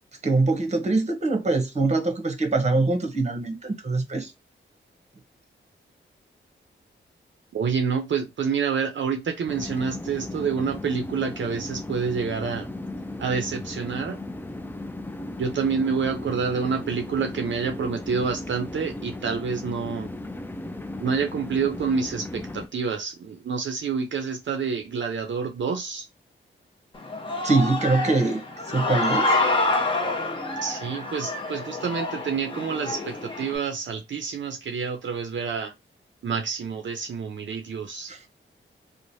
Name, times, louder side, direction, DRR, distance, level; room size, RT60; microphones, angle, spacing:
voice 1, 0.2-4.3 27.4-28.4 28.7-29.4 38.1-38.2, right 3 dB, 35° right, 0.8 m, -23 dB
voice 2, 7.5-12.7 13.2-14.2 15.4-20.1 21.0-26.1 30.6-35.7 36.2-38.1, right 5 dB, 65° right, 0.5 m, -28 dB
sound 1, 9.5-22.7, left 1 dB, 10° left, 0.3 m, -36 dB
Human voice / Cheering, 26.9-33.6, left 2 dB, 25° left, 0.7 m, -27 dB
3.0 x 2.1 x 2.6 m
wide cardioid pair, 85°, 20 cm